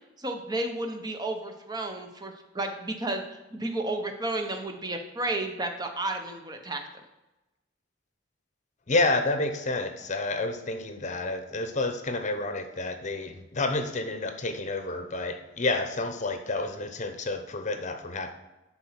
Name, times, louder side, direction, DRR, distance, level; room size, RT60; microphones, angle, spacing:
voice 1, 0.2-3.2 3.5-6.8, right 2 dB, 20° right, 5 dB, 1.0 m, -32 dB
voice 2, 8.9-18.3, left 2 dB, 40° left, 7 dB, 0.9 m, -29 dB
11.5 x 4.3 x 5.8 m, 1.0 s
head